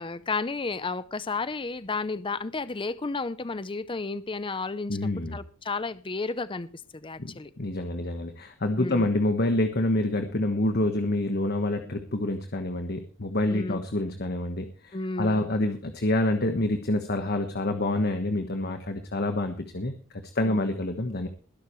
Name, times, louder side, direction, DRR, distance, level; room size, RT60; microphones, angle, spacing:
voice 1, 0.0-5.0 5.3-6.7 6.9-7.5 8.8-9.1 13.5-13.8 14.9-15.5 20.4-20.6, left 3 dB, 25° left, 0.6 m, -32 dB
voice 2, 4.9-5.4 7.2-21.3, left 1 dB, 50° left, 1.4 m, -27 dB
21.0 x 11.5 x 3.2 m
head